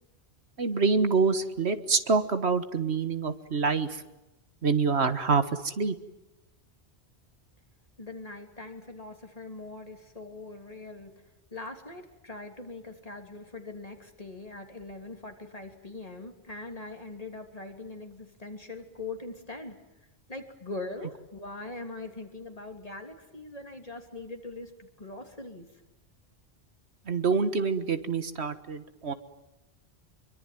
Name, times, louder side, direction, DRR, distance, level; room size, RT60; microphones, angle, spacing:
voice 1, 0.6-4.0 4.6-6.0 27.1-29.1, right 4 dB, 75° right, 10 dB, 1.8 m, -26 dB
voice 2, 8.0-11.1 11.5-19.7 20.3-25.7, left 2 dB, 35° left, 4 dB, 3.2 m, -42 dB
26.0 x 23.5 x 9.3 m, 0.95 s
omnidirectional pair, 1.1 m